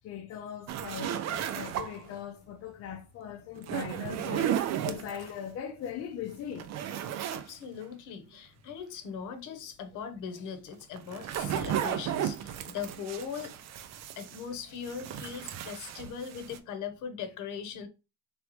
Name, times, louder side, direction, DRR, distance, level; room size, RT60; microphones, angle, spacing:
voice 1, 0.0-4.5 4.8-6.7, left 8 dB, 50° left, 0.6 m, -40 dB
sound 1, 0.7-2.2 3.6-5.3 5.9-6.0 6.3-7.5 7.8-7.9 10.7-14.5 14.8-16.6, right 10 dB, 55° right, 0.5 m, -34 dB
voice 2, 7.3-13.5 14.2-17.9, left 7 dB, 70° left, 0.9 m, -40 dB
4.1 x 3.5 x 3.0 m
cardioid pair, 160°, 31 cm